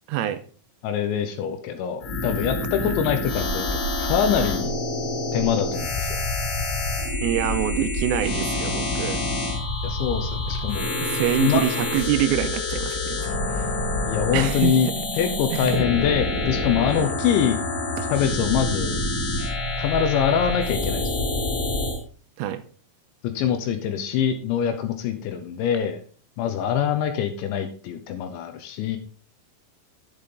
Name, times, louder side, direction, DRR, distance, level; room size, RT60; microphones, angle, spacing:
voice 1, 0.1-0.4 2.9-3.0 7.2-9.2 11.0-13.8 14.3-15.1 15.5-15.8 16.9-17.1 22.4-22.6, right 12 dB, 85° right, 10 dB, 3.2 m, -26 dB
voice 2, 0.8-3.7 4.0-4.8 5.3-6.2 9.8-10.9 11.4-11.6 14.0-14.9 15.2-17.6 18.1-19.0 19.8-21.1 23.2-26.0 26.4-29.0, left 8 dB, 75° left, 7 dB, 3.0 m, -24 dB
sound 1, 2.0-22.0, left 2 dB, 60° left, 4.9 m, -27 dB
10.5 x 8.6 x 3.8 m, 0.41 s
omnidirectional pair, 6.0 m